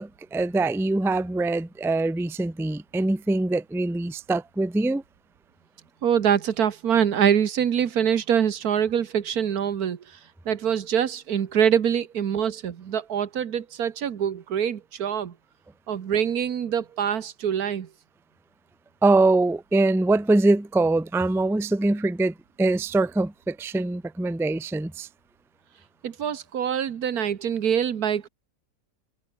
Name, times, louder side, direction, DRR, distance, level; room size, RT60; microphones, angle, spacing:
voice 1, 0.0-5.0 19.0-25.1, right 2 dB, 5° right, 0.5 m, -23 dB
voice 2, 6.0-10.2 10.4-15.3 15.9-17.9 26.0-28.3, right 8 dB, 80° right, 1.7 m, -24 dB
omnidirectional pair, 1.6 m